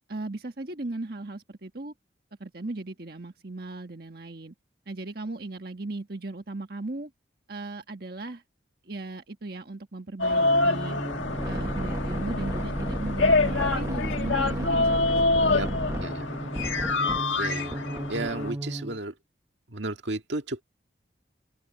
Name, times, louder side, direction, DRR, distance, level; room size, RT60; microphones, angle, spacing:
voice 1, 0.1-1.9 2.4-4.5 4.9-7.1 7.5-8.4 8.8-11.0 11.4-16.0, right 2 dB, 55° right, 1.5 m, -37 dB
sound 1, 10.2-18.5, left 3 dB, 85° left, 1.7 m, -26 dB
sound 2, 10.4-19.0, right 1 dB, 15° right, 1.1 m, -32 dB
voice 2, 16.0-16.4 17.4-17.8 18.1-19.2 19.7-20.6, right 2 dB, 70° right, 1.9 m, -33 dB
open air
head